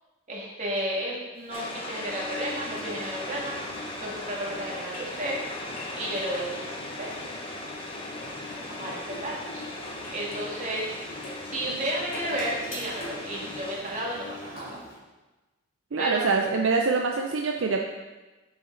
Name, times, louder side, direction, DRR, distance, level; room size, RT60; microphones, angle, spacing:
voice 1, 0.3-3.6 4.0-5.4 5.9-7.1 8.7-9.7 10.1-10.8 11.5-14.8 16.0-16.3, right 1 dB, 40° right, -4 dB, 2.2 m, -32 dB
Engine, 1.5-15.0, left 2 dB, 90° left, 2.5 m, -42 dB
sound 1, 1.5-13.8, left 2 dB, 30° left, 0.9 m, -39 dB
voice 2, 15.9-17.8, right 4 dB, 70° right, 2 dB, 0.6 m, -25 dB
8.0 x 7.2 x 3.9 m, 1.2 s
head